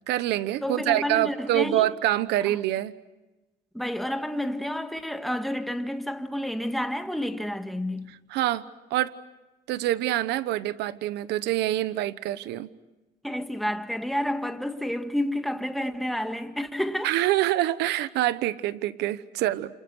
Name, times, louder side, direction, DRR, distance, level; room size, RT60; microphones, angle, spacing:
voice 1, 0.1-2.9 8.3-8.6 8.9-9.1 9.7-12.7 17.0-19.8, right 14 dB, 85° right, 1.0 m, -26 dB
voice 2, 0.6-1.9 2.5-2.6 3.7-8.1 13.2-17.1, left 1 dB, ahead, 1.8 m, -30 dB
29.5 x 28.0 x 6.3 m
cardioid pair, 110°, 17 cm